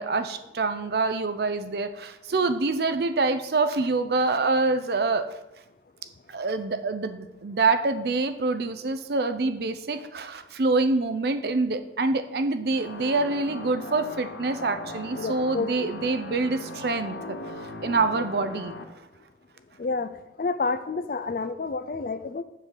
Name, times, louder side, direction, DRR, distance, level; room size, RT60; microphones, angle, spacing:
voice 1, 0.0-5.3 6.3-18.8, right 3 dB, 60° right, 9 dB, 0.5 m, -26 dB
sound 1, 12.7-18.8, left 2 dB, 85° left, 0.9 m, -39 dB
voice 2, 15.2-15.9 19.8-20.1 20.4-22.4, left 4 dB, 50° left, 12 dB, 0.4 m, -29 dB
7.4 x 3.9 x 6.5 m, 0.95 s
head